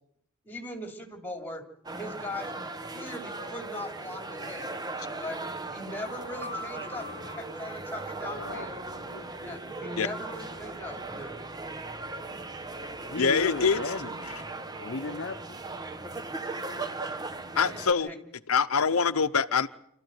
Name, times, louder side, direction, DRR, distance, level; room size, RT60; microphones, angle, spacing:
voice 1, 0.4-1.6 2.0-4.7 5.2-5.4 5.7-7.0 7.4-8.8 9.4-11.4 17.8-18.2, left 1 dB, 10° left, 3.4 m, -39 dB
sound 1, 1.8-17.9, right 2 dB, 20° right, 1.0 m, -38 dB
sound 2, 5.7-8.8, left 1 dB, 65° right, 2.4 m, -43 dB
voice 2, 8.3-8.7 9.1-9.3 13.1-14.5 14.8-15.6, left 3 dB, 55° left, 0.8 m, -35 dB
voice 3, 13.2-13.9 17.6-18.1 18.5-19.7, left 5 dB, 80° left, 0.8 m, -24 dB
27.0 x 13.5 x 9.3 m
head